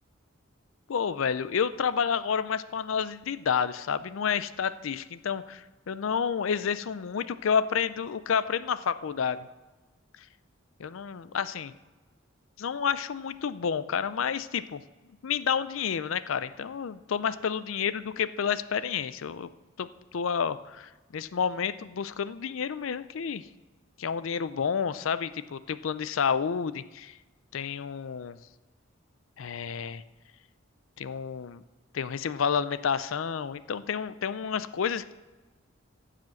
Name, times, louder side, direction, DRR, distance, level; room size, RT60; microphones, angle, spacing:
voice 1, 0.9-9.5 10.8-11.7 12.6-14.8 15.2-19.5 19.8-23.5 24.0-27.2 27.5-28.4 29.4-30.0 31.0-31.6 31.9-35.1, left 7 dB, 80° left, 14 dB, 0.4 m, -30 dB
15.0 x 5.0 x 7.7 m, 1.2 s
head